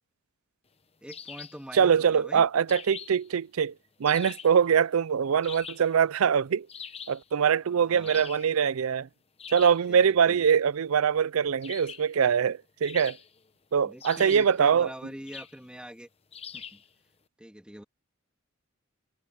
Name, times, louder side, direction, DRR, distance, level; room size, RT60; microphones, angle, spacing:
voice 1, 1.0-2.4 7.6-8.3 9.9-10.0 10.3-10.4 13.8-16.1 16.5-16.8 17.4-17.8, equal, 5° right, 2.0 m, -44 dB
sound 1, 1.1-1.7 2.7-3.3 4.1-4.6 5.4-6.0 6.7-7.2 8.0-8.5 9.4-9.8 11.6-12.1 12.8-13.5 14.0-14.6 15.3-15.6 16.3-16.9, left 7 dB, 30° left, 1.0 m, -43 dB
voice 2, 1.7-3.7 4.0-6.7 7.1-9.1 9.5-13.2 13.7-14.9, right 7 dB, 85° right, 0.5 m, -23 dB
head